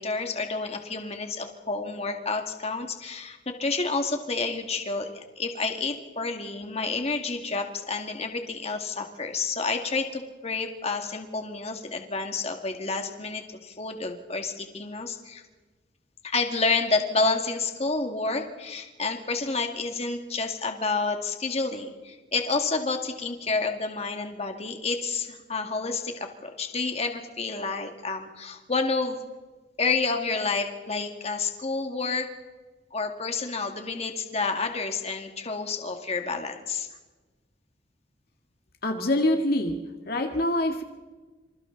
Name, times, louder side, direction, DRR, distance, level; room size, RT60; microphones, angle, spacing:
voice 1, 0.0-15.4 16.2-29.2 29.8-32.3 32.9-36.9, left 3 dB, 35° left, 4 dB, 2.2 m, -29 dB
voice 2, 38.8-40.8, left 1 dB, 55° left, 4 dB, 1.9 m, -25 dB
27.0 x 27.0 x 4.0 m, 1.3 s
head